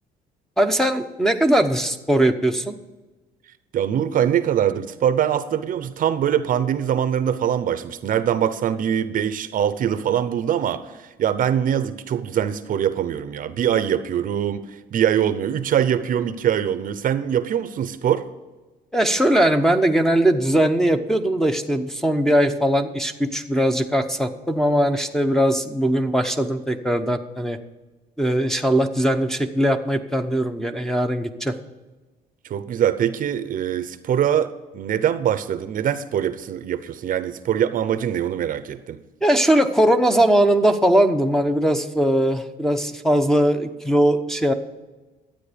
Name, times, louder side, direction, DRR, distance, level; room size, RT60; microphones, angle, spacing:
voice 1, 0.6-2.8 18.9-27.6 28.2-31.5 39.2-44.5, right 1 dB, 5° left, 7 dB, 0.9 m, -20 dB
voice 2, 3.7-18.3 32.4-39.0, right 9 dB, 55° right, 13 dB, 0.8 m, -23 dB
12.5 x 8.9 x 5.1 m, 1.2 s
cardioid pair, 110°, 17 cm